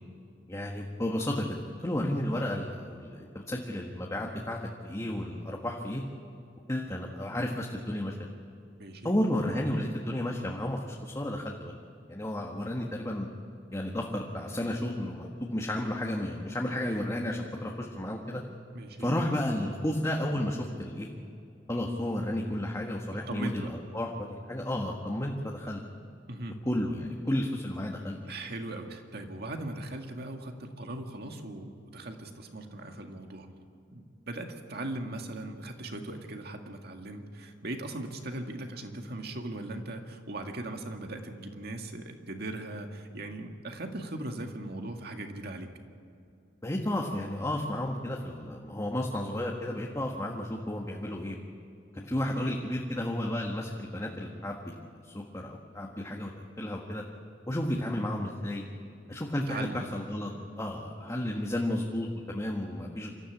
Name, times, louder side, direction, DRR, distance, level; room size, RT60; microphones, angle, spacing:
voice 1, 0.5-4.6 4.8-6.0 6.7-8.3 9.0-11.8 12.1-13.3 13.7-18.4 19.0-21.1 21.7-25.8 26.6-28.2 46.6-51.4 51.9-56.3 56.6-57.0 57.5-58.6 59.1-60.3 60.6-63.1, left 1 dB, 15° left, -1 dB, 1.6 m, -32 dB
voice 2, 8.8-9.2 18.7-19.1 23.3-23.7 26.3-26.6 28.3-33.5 33.9-45.7 59.5-59.9, right 2 dB, 60° right, 4 dB, 2.1 m, -39 dB
27.0 x 14.0 x 8.5 m, 2.5 s
head